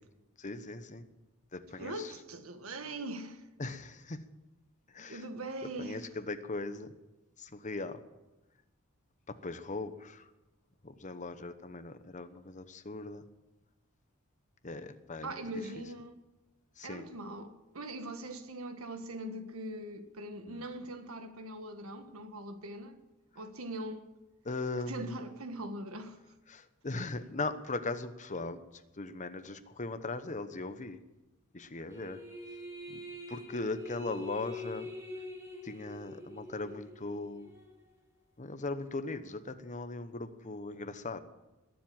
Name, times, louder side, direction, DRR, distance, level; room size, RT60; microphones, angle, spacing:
voice 1, 0.4-1.0 1.5-1.9 3.6-4.2 4.9-5.2 5.8-6.9 7.4-8.0 9.3-10.2 10.8-13.2 14.6-15.4 16.8-17.1 20.5-20.6 24.4-25.1 26.5-28.6 29.0-31.0 31.5-32.2 32.9-33.0 33.3-34.9 35.6-37.5 38.4-41.2, left 3 dB, 35° left, 1.0 m, -39 dB
voice 2, 1.8-3.5 5.1-6.1 15.2-16.2 16.8-23.0 23.3-24.1 24.9-26.2, right 1 dB, 75° right, 1.7 m, -41 dB
sound 1, 31.9-37.8, left 1 dB, 10° right, 5.0 m, -45 dB
20.5 x 7.7 x 8.8 m
head